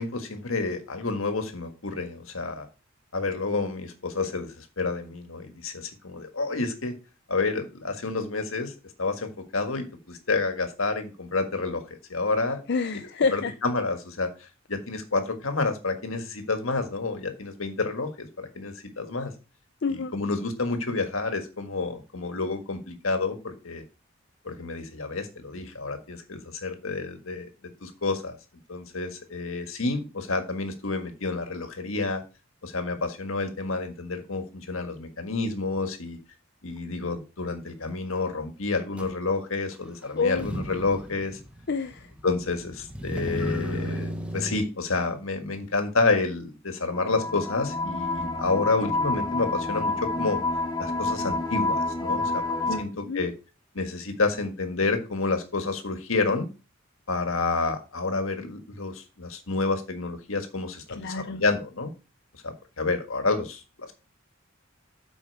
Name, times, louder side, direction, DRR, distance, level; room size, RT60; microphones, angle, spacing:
voice 1, 0.0-2.7 3.1-6.9 7.3-8.7 9.0-12.6 13.3-19.3 19.9-23.8 24.4-27.5 27.8-28.4 28.7-32.2 32.6-36.2 36.6-41.4 42.2-50.4 50.8-52.4 52.8-53.3 53.7-56.5 57.1-61.9 62.4-63.9, left 3 dB, 75° left, 1.7 m, -29 dB
voice 2, 12.7-13.5 19.8-20.1 40.2-40.5 41.7-42.1 52.7-53.3 61.0-61.4, left 4 dB, 55° left, 0.5 m, -28 dB
Motor vehicle (road), 39.0-39.1 40.2-44.6, equal, 5° right, 1.0 m, -34 dB
sound 1, 46.9-52.8, left 2 dB, 20° left, 1.6 m, -28 dB
8.4 x 5.4 x 4.7 m
head